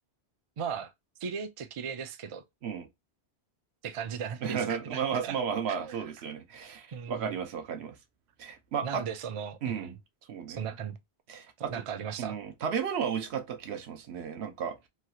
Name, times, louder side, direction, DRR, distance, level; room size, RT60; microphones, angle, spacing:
voice 1, 0.6-0.9 1.2-2.4 3.8-5.4 5.7-6.0 6.9-7.3 8.8-10.0 10.5-11.0 11.7-12.4, right 7 dB, 55° right, 0.3 m, -37 dB
voice 2, 4.4-8.0 8.4-9.0 9.6-9.9 10.3-10.7 11.3-11.8 12.2-14.9, right 7 dB, 75° right, 0.9 m, -33 dB
3.1 x 2.4 x 2.7 m
omnidirectional pair, 1.1 m